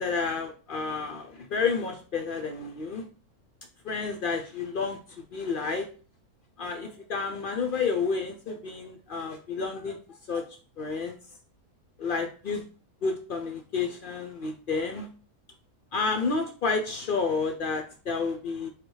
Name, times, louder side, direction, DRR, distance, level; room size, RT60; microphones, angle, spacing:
voice 1, 0.0-3.1 3.8-5.0 5.3-5.9 6.6-10.0 10.3-10.4 10.8-11.2 12.0-12.6 13.0-15.1 15.9-18.7, left 4 dB, 60° left, 4 dB, 0.5 m, -30 dB
4.9 x 2.3 x 4.6 m, 0.38 s
omnidirectional pair, 1.5 m